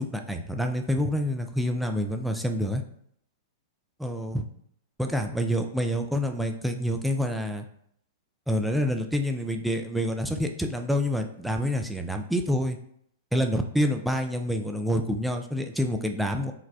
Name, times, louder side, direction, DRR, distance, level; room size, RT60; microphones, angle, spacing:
voice 1, 0.0-2.8 4.0-4.5 5.0-7.7 8.5-12.8 13.3-16.5, equal, ahead, 4 dB, 0.3 m, -27 dB
3.9 x 2.2 x 2.6 m, 0.69 s
figure-of-eight pair, 105°, 0 cm